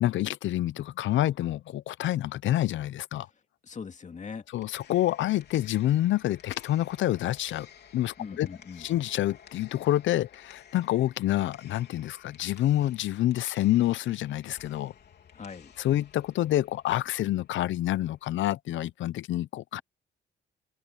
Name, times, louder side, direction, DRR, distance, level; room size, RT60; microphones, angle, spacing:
voice 1, 0.0-3.3 4.5-7.7 7.9-8.5 8.8-14.9 15.8-19.8, left 14 dB, 75° left, 0.6 m, -27 dB
voice 2, 3.2-4.5 8.2-8.9 15.3-15.7, left 5 dB, 40° left, 2.3 m, -41 dB
sound 1, 4.4-18.4, left 8 dB, 55° left, 3.6 m, -55 dB
open air
cardioid pair, 90°, 20 cm